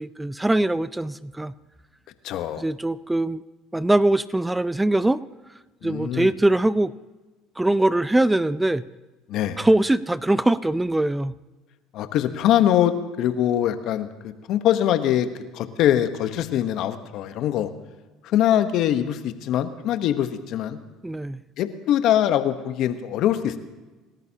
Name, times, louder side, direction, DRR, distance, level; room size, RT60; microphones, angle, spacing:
voice 1, 0.0-1.5 2.6-3.4 3.7-5.2 5.8-6.9 7.6-8.8 9.6-11.3 21.0-21.4, right 1 dB, 10° right, 16 dB, 0.5 m, -22 dB
voice 2, 2.2-2.6 5.8-6.3 9.3-9.6 11.9-17.7 18.2-20.8 21.6-23.6, left 11 dB, 60° left, 10 dB, 1.1 m, -23 dB
28.0 x 13.5 x 2.9 m, 1.2 s
hypercardioid pair, 75°, 0 cm